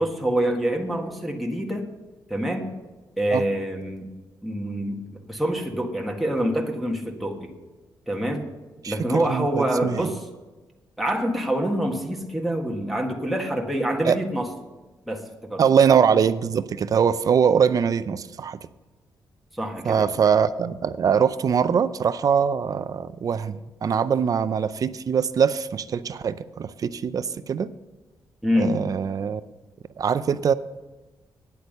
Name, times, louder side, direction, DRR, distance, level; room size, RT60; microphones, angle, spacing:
voice 1, 0.0-1.9 2.3-2.7 3.2-4.1 4.4-7.5 8.1-8.4 8.9-10.2 11.0-14.5 15.1-15.6 19.5-20.1 28.4-28.8, right 1 dB, ahead, 0 dB, 1.6 m, -26 dB
voice 2, 8.8-10.1 14.0-14.2 15.6-18.6 19.8-27.7 28.6-29.4 30.0-30.5, right 7 dB, 50° right, 14 dB, 0.5 m, -22 dB
9.9 x 8.2 x 6.6 m, 1.2 s
cardioid pair, 90°, 8 cm